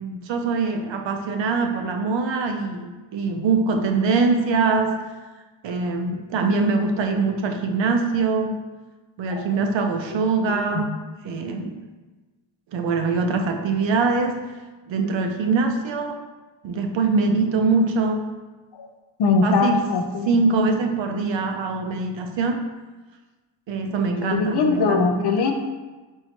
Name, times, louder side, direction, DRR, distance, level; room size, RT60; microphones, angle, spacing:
voice 1, 0.0-4.9 5.6-8.6 9.2-10.9 11.2-11.7 12.7-14.4 14.9-16.2 16.6-18.2 19.4-19.8 20.2-22.6 23.7-25.3, right 4 dB, 75° right, 5 dB, 0.5 m, -23 dB
voice 2, 19.2-20.4 24.2-25.5, left 4 dB, 65° left, 5 dB, 0.5 m, -21 dB
4.3 x 2.7 x 2.8 m, 1.2 s
wide cardioid pair, 155°, 45 cm